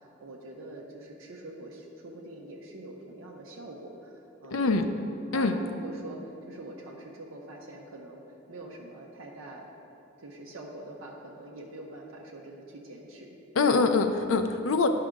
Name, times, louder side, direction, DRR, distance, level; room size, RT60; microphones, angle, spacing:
voice 1, 0.0-4.6 5.3-8.2 8.5-9.7 10.2-13.4, right 1 dB, 85° right, -2 dB, 0.8 m, -44 dB
voice 2, 4.5-4.9 5.3-5.5 13.6-14.9, left 4 dB, 85° left, 7 dB, 0.6 m, -24 dB
10.5 x 5.6 x 3.7 m, 2.8 s
head